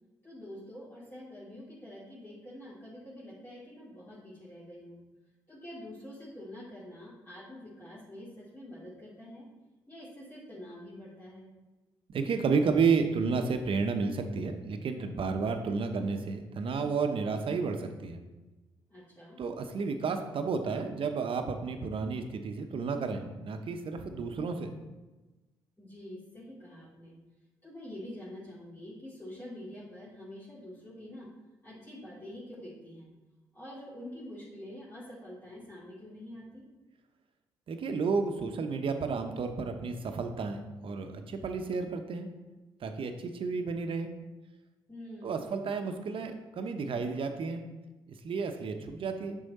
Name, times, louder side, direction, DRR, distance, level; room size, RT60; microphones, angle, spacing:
voice 1, 0.2-5.0 5.5-9.5 9.9-11.5 18.9-19.4 25.8-27.2 27.6-31.3 31.6-33.1 33.5-36.6 44.9-45.6, left 1 dB, 20° left, -9 dB, 2.4 m, -46 dB
voice 2, 12.1-18.2 19.4-24.7 37.7-42.3 42.8-44.1 45.2-47.6 48.2-49.4, right 5 dB, 55° right, 6 dB, 0.9 m, -31 dB
6.4 x 5.7 x 4.1 m, 1.2 s
hypercardioid pair, 50°, 10 cm